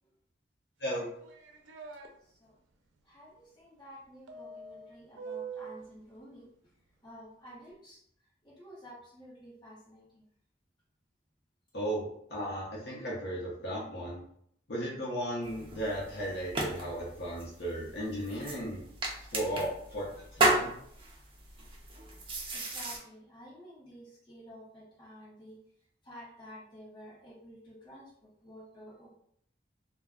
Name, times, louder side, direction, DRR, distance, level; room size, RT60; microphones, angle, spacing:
sound 1, 0.8-2.1 4.3-5.9, right 5 dB, 85° right, 0.4 m, -44 dB
voice 1, 3.0-6.5 7.0-8.0 8.4-10.2 22.5-25.6 26.0-29.1, equal, 25° left, -8 dB, 1.1 m, -51 dB
voice 2, 11.7-14.2 14.7-18.8 19.3-20.1 20.3-20.7, equal, 60° left, -6 dB, 0.8 m, -35 dB
sound 2, 15.4-23.0, right 1 dB, 30° right, 0.4 m, -34 dB
2.2 x 2.2 x 3.6 m, 0.68 s
head